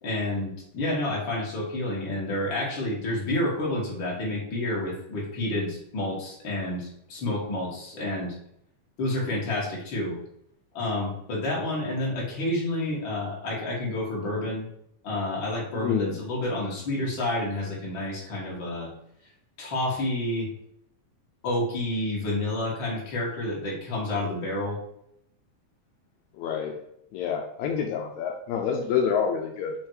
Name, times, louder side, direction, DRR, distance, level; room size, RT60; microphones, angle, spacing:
voice 1, 0.0-8.3 9.0-10.2 10.7-14.7 15.0-18.9 19.6-20.5 21.4-24.8, left 1 dB, 40° left, -4 dB, 2.1 m, -29 dB
voice 2, 15.8-16.2 26.4-26.7 27.1-29.7, left 7 dB, 85° left, 2 dB, 1.6 m, -27 dB
6.4 x 3.6 x 4.7 m, 0.73 s
omnidirectional pair, 4.1 m